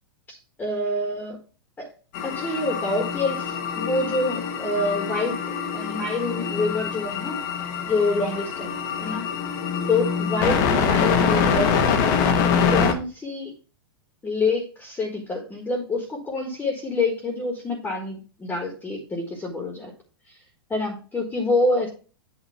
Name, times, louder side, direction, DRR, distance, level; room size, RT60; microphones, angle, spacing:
voice 1, 0.3-1.4 1.8-1.9 2.2-5.4 5.7-7.4 7.9-8.7 9.0-9.3 9.9-11.8 12.7-13.5 14.2-19.9 20.7-21.9, left 2 dB, 15° left, 2 dB, 1.5 m, -26 dB
sound 1, 2.1-12.9, left 6 dB, 50° left, 1.2 m, -24 dB
8.6 x 2.9 x 5.7 m, 0.37 s
hypercardioid pair, 125°, 13 cm